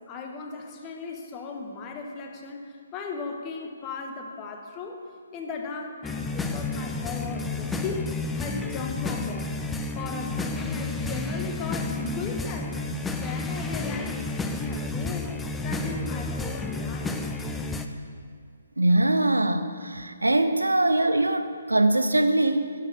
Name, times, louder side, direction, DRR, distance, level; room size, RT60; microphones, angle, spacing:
voice 1, 0.0-5.0 5.3-9.7 9.9-12.7 13.1-15.3 15.6-17.3, left 4 dB, 25° left, 3 dB, 1.2 m, -37 dB
sound 1, 6.0-17.8, left 3 dB, 5° left, 0.5 m, -31 dB
voice 2, 18.8-22.7, right 1 dB, 85° right, 9 dB, 0.7 m, -22 dB
11.5 x 6.6 x 6.8 m, 2.1 s
figure-of-eight pair, 135°, 0 cm